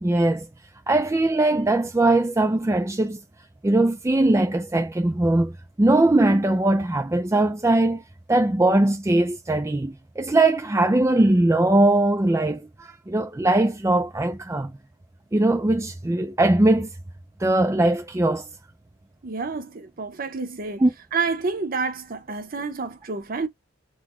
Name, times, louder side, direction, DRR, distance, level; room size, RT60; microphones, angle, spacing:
voice 1, 0.0-0.5 0.9-3.2 3.6-5.5 5.8-8.0 8.3-14.7 15.3-16.9 17.4-18.5 20.8-20.9, right 2 dB, 15° right, 0.3 m, -20 dB
voice 2, 19.2-20.8 21.1-23.5, right 4 dB, 40° right, 0.7 m, -29 dB
3.9 x 2.1 x 3.0 m
head